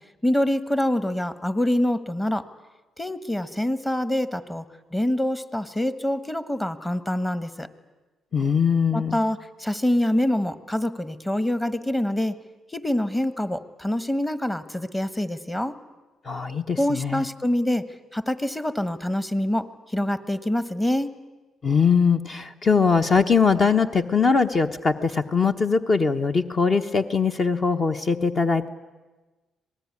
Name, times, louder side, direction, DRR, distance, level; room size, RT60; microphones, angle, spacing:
voice 1, 0.2-2.5 3.0-4.6 4.9-7.7 8.9-12.3 12.7-15.8 16.8-17.8 18.1-21.1, left 1 dB, 10° left, 14 dB, 1.4 m, -25 dB
voice 2, 8.3-9.2 16.2-17.2 21.6-28.7, left 5 dB, 40° left, 7 dB, 1.1 m, -21 dB
25.5 x 19.0 x 9.7 m, 1.2 s
cardioid pair, 90°, 0 cm